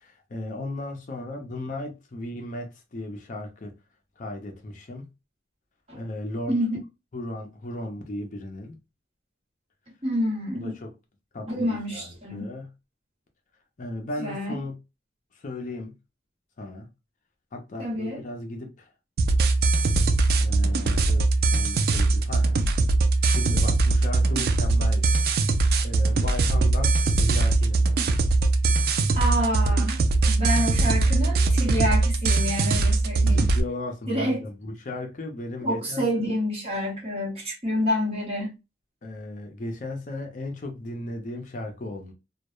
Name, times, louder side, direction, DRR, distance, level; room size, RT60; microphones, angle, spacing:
voice 1, 0.0-3.7 4.2-5.1 5.9-6.5 7.1-8.8 10.6-10.9 11.3-12.1 12.3-12.7 13.8-14.8 15.3-15.9 16.6-16.9 17.5-18.9 20.4-22.5 23.3-25.2 25.8-27.8 33.2-36.1 39.0-42.1, left 2 dB, 45° left, 0.5 m, -36 dB
voice 2, 6.5-6.8 10.0-10.8 11.5-12.5 14.2-14.6 17.8-18.2 29.1-33.5 34.1-34.4 35.6-38.5, equal, 35° right, 1.0 m, -28 dB
sound 1, 19.2-33.6, right 3 dB, 55° right, 0.3 m, -21 dB
2.2 x 2.0 x 2.9 m
head